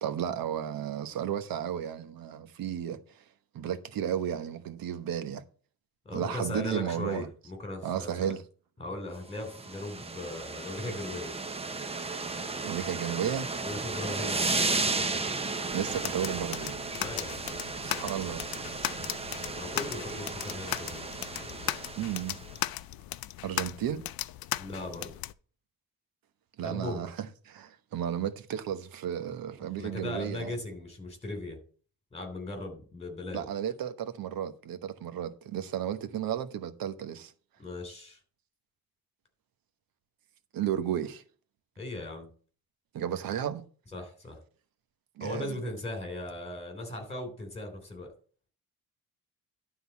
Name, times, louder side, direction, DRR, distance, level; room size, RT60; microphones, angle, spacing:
voice 1, 0.0-3.0 3.5-5.4 6.1-7.3 7.8-8.4 12.6-13.5 15.7-16.7 17.8-18.4 22.0-22.4 23.4-24.0 26.6-30.5 33.3-37.3 40.5-41.2 42.9-43.6 45.2-45.6, right 9 dB, 80° right, 1.1 m, -33 dB
voice 2, 6.0-8.3 8.8-11.3 13.6-15.3 16.9-17.4 19.5-21.7 24.6-25.1 26.6-27.1 29.8-31.6 32.1-33.4 37.6-38.2 41.8-42.3 43.9-44.4 45.2-48.1, left 2 dB, 20° left, 3.3 m, -38 dB
sound 1, 9.3-22.6, right 3 dB, 15° right, 0.7 m, -34 dB
sound 2, 15.7-25.3, left 14 dB, 85° left, 0.5 m, -37 dB
11.5 x 3.9 x 7.2 m
cardioid pair, 150°, 35 cm